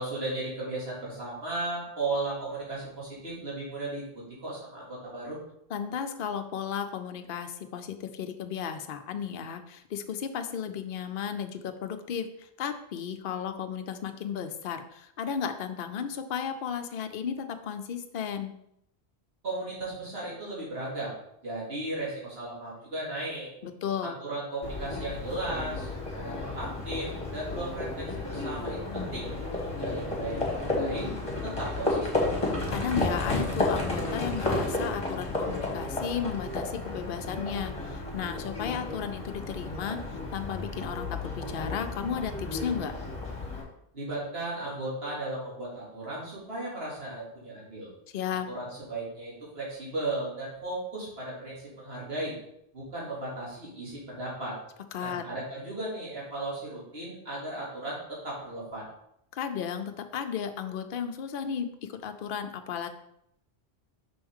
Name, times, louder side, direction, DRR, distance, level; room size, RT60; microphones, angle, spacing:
voice 1, 0.0-5.4 19.4-21.1 21.4-23.5 24.0-29.3 29.7-31.1 31.4-32.3 43.9-47.9 48.5-52.4 52.7-54.6 55.0-58.9, right 2 dB, 70° right, -6 dB, 2.8 m, -36 dB
voice 2, 5.7-18.5 23.6-24.2 32.7-42.9 48.1-48.5 54.9-55.2 59.3-62.9, left 7 dB, 60° left, 7 dB, 0.8 m, -34 dB
Livestock farm animals working animals, 24.6-43.6, left 2 dB, 30° left, 1.7 m, -32 dB
6.8 x 6.1 x 3.6 m, 0.76 s
omnidirectional pair, 1.1 m